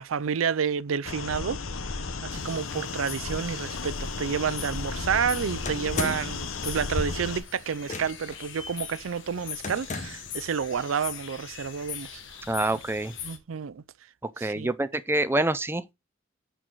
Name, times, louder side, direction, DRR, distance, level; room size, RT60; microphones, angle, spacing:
voice 1, 0.0-1.6 2.2-12.2 13.2-13.8 14.4-14.7, right 6 dB, 80° right, 0.5 m, -30 dB
sound 1, 1.0-7.4, left 4 dB, 85° left, 1.0 m, -34 dB
sound 2, 2.3-13.4, left 8 dB, 70° left, 1.6 m, -42 dB
sound 3, 5.6-6.5 7.8-8.4 9.6-10.3, left 2 dB, 40° left, 1.2 m, -34 dB
voice 2, 12.5-13.1 14.4-15.9, right 2 dB, 10° right, 0.6 m, -26 dB
10.5 x 4.6 x 4.0 m
head